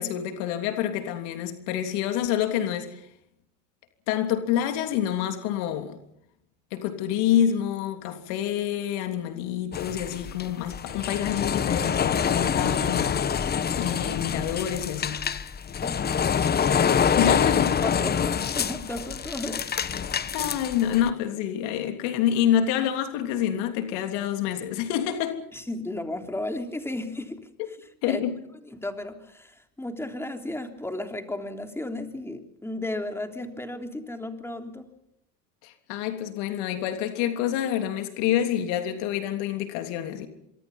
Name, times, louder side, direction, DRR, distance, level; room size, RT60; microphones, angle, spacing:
voice 1, 0.0-3.0 4.1-6.0 6.7-13.4 13.7-15.2 17.2-17.7 20.3-25.4 28.0-28.3 35.6-40.3, left 10 dB, 65° left, 3.2 m, -27 dB
sound 1, 9.7-21.1, left 7 dB, 20° left, 1.2 m, -26 dB
voice 2, 15.7-16.5 17.8-19.7 25.5-27.4 28.1-28.2 28.6-34.9, left 1 dB, 5° left, 3.3 m, -34 dB
26.0 x 24.0 x 5.5 m
supercardioid pair, 110°, 43 cm